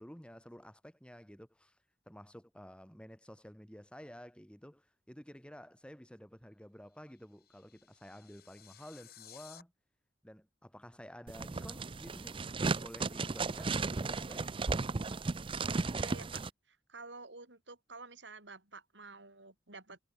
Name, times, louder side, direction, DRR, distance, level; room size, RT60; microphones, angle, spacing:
voice 1, 0.0-1.8 2.1-9.7 10.2-12.4 12.8-14.5, equal, 5° left, 3.7 m, -52 dB
sound 1, 6.9-9.6, left 10 dB, 60° left, 6.5 m, -57 dB
Rustle through chord box, 11.3-16.5, right 3 dB, 30° right, 0.5 m, -35 dB
voice 2, 15.9-20.0, right 3 dB, 85° right, 7.8 m, -51 dB
head